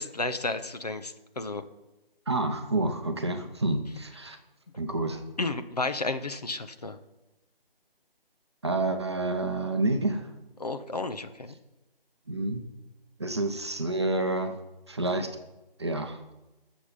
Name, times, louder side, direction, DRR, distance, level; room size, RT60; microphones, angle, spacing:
voice 1, 0.0-1.6 5.4-7.0 10.6-11.6, left 3 dB, 40° left, 9 dB, 0.9 m, -32 dB
voice 2, 2.3-4.4 4.8-5.2 8.6-10.3 12.3-12.6 13.2-14.6 14.9-15.3 15.8-16.2, right 2 dB, 30° right, 6 dB, 0.9 m, -28 dB
19.5 x 7.2 x 5.3 m, 1.0 s
figure-of-eight pair, 160°, 30 cm